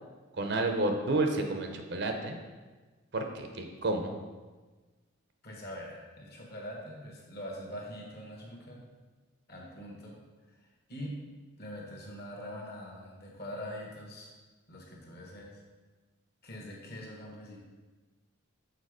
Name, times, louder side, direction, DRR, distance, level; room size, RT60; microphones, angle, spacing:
voice 1, 0.3-2.4 3.1-4.2, right 2 dB, 50° right, 4 dB, 0.7 m, -30 dB
voice 2, 5.4-8.8 9.5-10.2 10.5-10.6 10.9-11.2 11.6-14.3 14.7-15.6 16.4-17.6, equal, 50° left, -1 dB, 1.4 m, -43 dB
6.6 x 4.5 x 4.9 m, 1.3 s
head